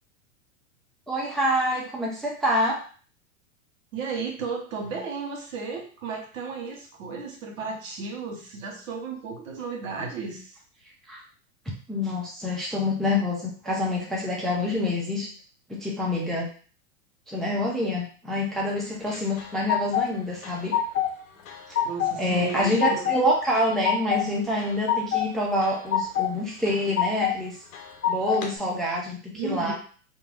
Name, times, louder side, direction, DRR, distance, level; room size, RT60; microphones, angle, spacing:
voice 1, 1.1-2.8 11.1-11.2 11.9-15.3 15.7-16.5 17.3-20.7 22.1-27.6 28.1-29.7, left 1 dB, ahead, -3 dB, 0.4 m, -26 dB
voice 2, 3.9-10.6 21.8-23.1 29.3-29.7, right 4 dB, 80° right, 1 dB, 1.1 m, -34 dB
sound 1, 19.1-20.1 20.4-21.2 21.5-22.1 22.5-23.2 23.5-24.2 24.6-25.3 25.6-26.3 26.7-27.4 27.7-28.5, left 9 dB, 85° left, 0.7 m, -26 dB
2.6 x 2.2 x 3.2 m, 0.41 s
hypercardioid pair, 125°, 39 cm